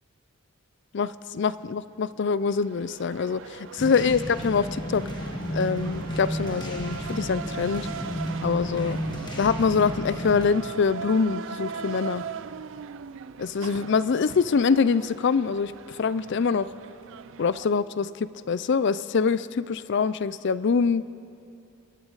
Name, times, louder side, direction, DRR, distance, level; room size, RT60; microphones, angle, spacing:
voice 1, 0.9-5.1 5.5-7.9 8.4-9.0 9.4-12.3 13.4-16.7 17.4-21.1, left 5 dB, 55° left, 16 dB, 0.4 m, -24 dB
sound 1, 2.4-17.7, right 6 dB, 55° right, 0.4 m, -40 dB
sound 2, 3.8-10.5, equal, 20° left, 1.4 m, -32 dB
26.5 x 13.0 x 4.0 m, 2.6 s
head